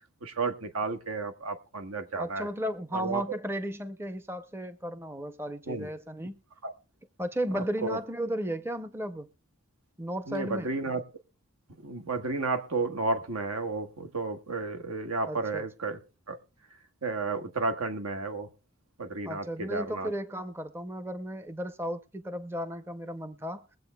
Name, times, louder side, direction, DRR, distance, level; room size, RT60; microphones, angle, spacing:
voice 1, 0.2-2.5 2.9-3.4 5.7-5.9 6.6-6.7 7.5-8.0 10.3-11.0 11.8-16.0 16.3-16.4 17.0-18.5 19.0-20.1, right 3 dB, 85° right, 1.3 m, -32 dB
voice 2, 2.2-6.4 7.2-9.3 10.0-10.7 15.2-15.6 19.2-23.7, equal, 10° right, 0.5 m, -34 dB
22.5 x 7.8 x 2.2 m
head